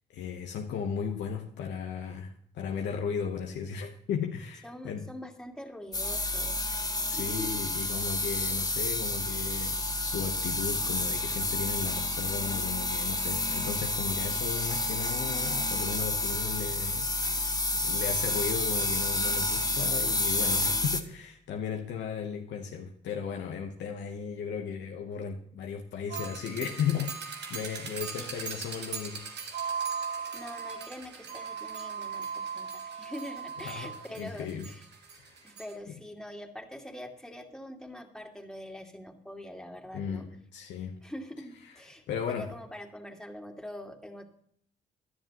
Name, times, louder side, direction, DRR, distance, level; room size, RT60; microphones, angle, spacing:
voice 1, 0.1-5.1 6.8-17.5 17.8-29.2 33.6-34.7 35.2-35.4 39.9-40.2 40.5-41.0 42.1-42.5, left 7 dB, 80° left, 2 dB, 1.0 m, -35 dB
voice 2, 4.6-6.8 7.1-7.6 28.2-28.3 30.3-34.8 35.4-40.2 41.0-44.2, equal, 5° left, 2 dB, 2.6 m, -44 dB
sound 1, 5.9-21.0, left 2 dB, 20° left, 1.4 m, -30 dB
sound 2, 26.1-35.7, right 6 dB, 70° right, 2.1 m, -38 dB
15.5 x 11.0 x 3.0 m, 0.66 s
supercardioid pair, 50°, 18 cm